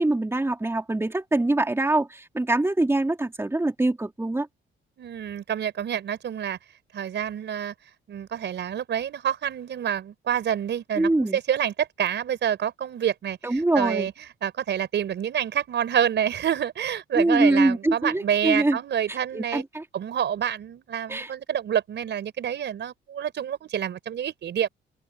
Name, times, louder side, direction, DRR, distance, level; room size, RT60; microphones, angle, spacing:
voice 1, 0.0-4.5 11.0-11.4 13.4-14.1 17.1-18.8 19.1-19.8 21.1-21.3, right 2 dB, 10° right, 3.0 m, -24 dB
voice 2, 5.0-6.6 6.9-7.7 8.1-14.1 14.4-19.6 19.9-24.7, right 9 dB, 65° right, 4.8 m, -27 dB
open air
cardioid pair, 90°, 20 cm